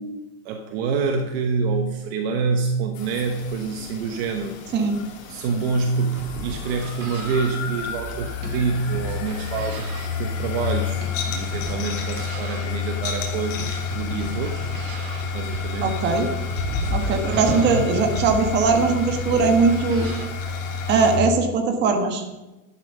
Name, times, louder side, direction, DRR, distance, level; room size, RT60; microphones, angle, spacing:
voice 1, 0.0-4.6 5.3-11.0 11.3-14.7 15.3-16.1 17.2-18.0, right 4 dB, 45° right, 5 dB, 1.1 m, -27 dB
sound 1, 3.0-21.2, left 5 dB, 55° left, 3.3 m, -30 dB
sound 2, 6.1-20.3, right 3 dB, 70° right, 2.7 m, -39 dB
voice 2, 15.8-16.3 16.9-20.1 20.9-22.2, right 4 dB, 25° right, 5 dB, 1.4 m, -20 dB
12.0 x 11.0 x 5.4 m, 1.1 s
supercardioid pair, 170°, 45 cm